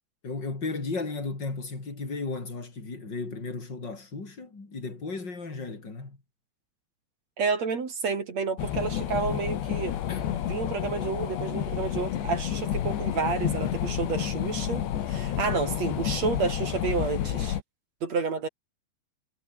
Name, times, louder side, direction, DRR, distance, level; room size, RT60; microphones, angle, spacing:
voice 1, 0.2-6.2 10.1-10.3, left 3 dB, 25° left, 5.5 m, -35 dB
voice 2, 7.4-10.0 10.5-17.6 18.0-18.5, right 5 dB, 40° right, 3.8 m, -30 dB
sound 1, 8.6-17.6, left 10 dB, 75° left, 4.4 m, -30 dB
omnidirectional pair, 5.0 m